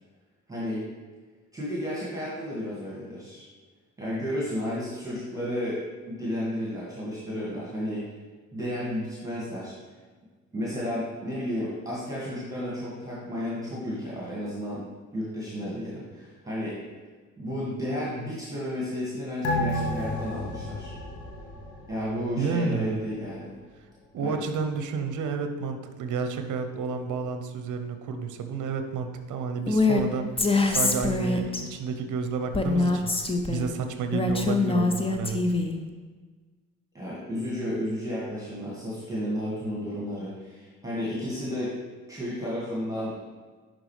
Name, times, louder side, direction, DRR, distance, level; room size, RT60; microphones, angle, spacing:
voice 1, 0.5-0.9 1.5-3.4 4.0-8.1 8.5-9.7 10.5-14.9 15.1-16.8 17.4-20.9 21.9-23.5 24.2-24.4 36.9-41.8 42.1-43.2, equal, 10° right, -6 dB, 2.0 m, -32 dB
sound 1, 19.4-22.4 22.7-22.8, left 1 dB, 65° left, 1.2 m, -31 dB
voice 2, 22.4-22.9 24.1-35.4, right 5 dB, 45° right, 7 dB, 0.8 m, -31 dB
Female speech woman speaking, 29.7-30.0 30.4-31.6 32.5-33.7 34.1-35.8, left 3 dB, 15° left, 0.7 m, -24 dB
11.0 x 3.9 x 3.3 m, 1.4 s
figure-of-eight pair, 45°, 42 cm